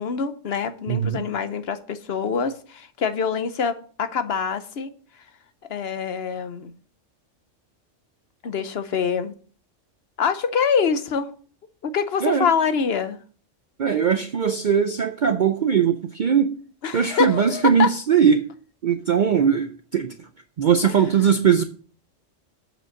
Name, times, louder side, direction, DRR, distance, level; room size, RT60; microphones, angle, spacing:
voice 1, 0.0-4.9 5.7-6.7 8.4-9.3 10.2-11.3 11.8-13.2 16.8-17.9 20.8-21.0, left 6 dB, 55° left, 1.0 m, -25 dB
voice 2, 0.9-1.3 12.2-12.5 13.8-16.6 16.9-18.4 18.8-20.3 20.6-21.6, right 7 dB, 55° right, 0.5 m, -20 dB
7.8 x 5.0 x 6.5 m
omnidirectional pair, 1.3 m